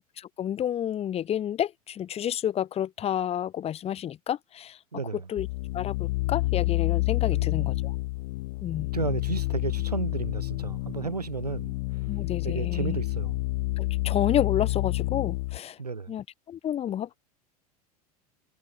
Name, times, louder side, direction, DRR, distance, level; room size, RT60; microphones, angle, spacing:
voice 1, 0.2-4.8 5.3-5.5 5.7-7.9 8.6-8.9 12.1-13.0 13.8-15.8 16.1-17.2, left 10 dB, 30° left, 3.3 m, -30 dB
voice 2, 4.9-5.3 7.3-7.9 8.9-11.8 12.4-13.4 15.8-16.2, right 4 dB, 85° right, 2.6 m, -33 dB
sound 1, 5.4-15.6, left 22 dB, 55° left, 1.2 m, -29 dB
figure-of-eight pair, 80°, 20 cm